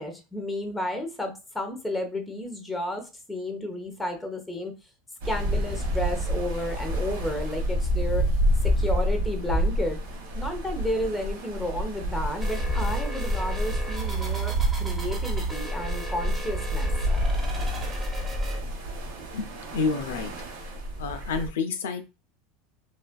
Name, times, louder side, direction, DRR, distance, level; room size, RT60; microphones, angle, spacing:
voice 1, 0.0-4.7 5.2-8.2 8.6-10.0 10.3-16.9, left 1 dB, 5° left, 4 dB, 0.8 m, -32 dB
sound 1, 5.2-21.5, equal, 80° right, 1.3 m, -28 dB
sound 2, 12.4-18.6, right 3 dB, 20° right, 1.0 m, -33 dB
voice 2, 19.7-20.3 21.0-22.0, left 4 dB, 85° left, 8 dB, 0.4 m, -28 dB
3.2 x 2.4 x 2.2 m, 0.29 s
hypercardioid pair, 105°, 0 cm